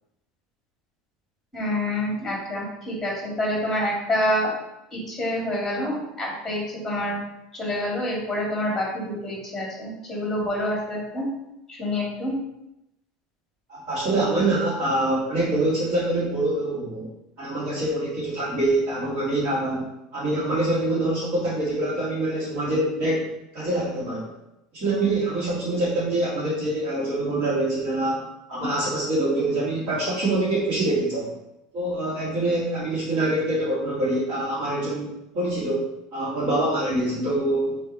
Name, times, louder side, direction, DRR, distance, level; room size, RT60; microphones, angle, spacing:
voice 1, 1.5-4.5 4.9-7.2 7.5-11.3 11.7-12.3, left 1 dB, 5° left, -3 dB, 2.3 m, -27 dB
voice 2, 13.7-17.1 17.4-19.9 20.1-24.3 24.7-31.3 31.7-37.8, right 1 dB, 45° right, -6 dB, 2.7 m, -25 dB
6.3 x 3.6 x 5.5 m, 0.87 s
cardioid pair, 165°, 3 cm